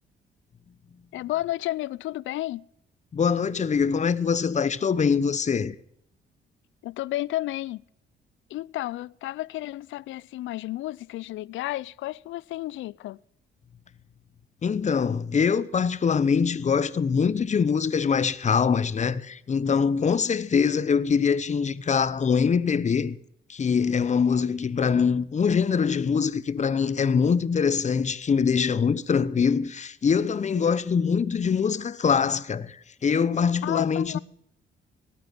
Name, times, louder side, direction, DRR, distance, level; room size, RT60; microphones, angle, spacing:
voice 1, 1.1-2.7 6.8-7.8 8.5-13.2 33.6-34.2, left 16 dB, 75° left, 0.5 m, -32 dB
voice 2, 3.1-5.7 14.6-23.2 23.5-34.2, left 6 dB, 35° left, 0.9 m, -23 dB
18.5 x 8.7 x 6.1 m
cardioid pair, 90°, 20 cm